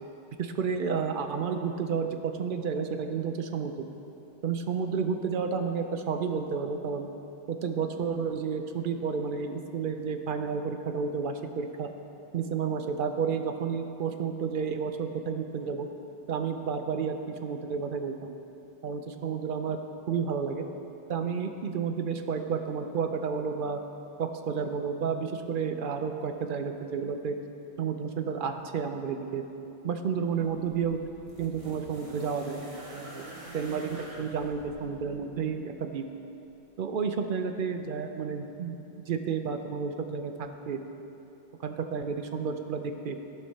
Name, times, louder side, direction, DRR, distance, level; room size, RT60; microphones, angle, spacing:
voice 1, 0.4-3.9 4.4-7.1 7.5-11.9 12.3-15.9 16.3-18.3 18.8-19.8 20.1-20.7 21.1-23.8 24.2-27.4 27.8-29.4 29.8-31.0 31.4-32.7 32.9-36.0 36.8-40.8 41.6-43.2, right 6 dB, 60° right, 6 dB, 0.7 m, -31 dB
sound 1, 30.2-35.5 36.5-36.6, right 1 dB, 30° right, 1.2 m, -46 dB
14.5 x 5.3 x 4.1 m, 2.8 s
omnidirectional pair, 1.1 m